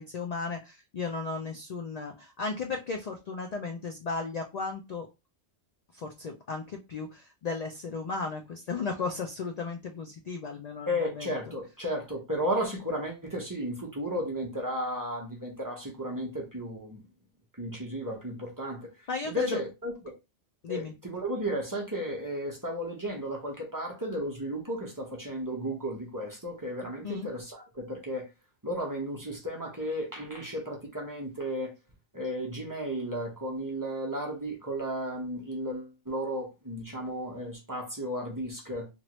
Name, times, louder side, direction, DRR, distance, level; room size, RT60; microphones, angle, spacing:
voice 1, 0.0-5.1 5.9-11.4 19.1-19.6 20.6-20.9 27.0-27.3, left 4 dB, 70° left, 0.3 m, -35 dB
voice 2, 10.9-17.0 17.6-18.9 19.2-20.1 20.7-28.3 28.6-31.7 32.1-38.9, equal, 20° right, 0.6 m, -34 dB
3.0 x 2.5 x 3.0 m
omnidirectional pair, 1.2 m